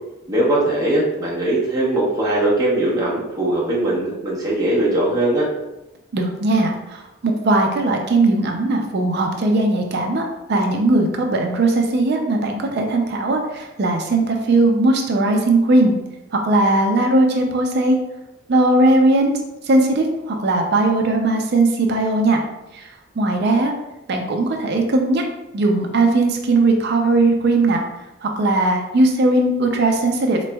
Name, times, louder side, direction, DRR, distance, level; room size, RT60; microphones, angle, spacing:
voice 1, 0.3-5.5, right 1 dB, 20° right, -6 dB, 0.9 m, -20 dB
voice 2, 6.1-15.9 16.3-18.0 18.5-19.4 19.6-22.4 22.7-23.7 24.1-25.2 25.5-27.8 28.2-30.5, right 2 dB, 55° right, 3 dB, 0.4 m, -18 dB
4.1 x 3.0 x 2.2 m, 0.94 s
head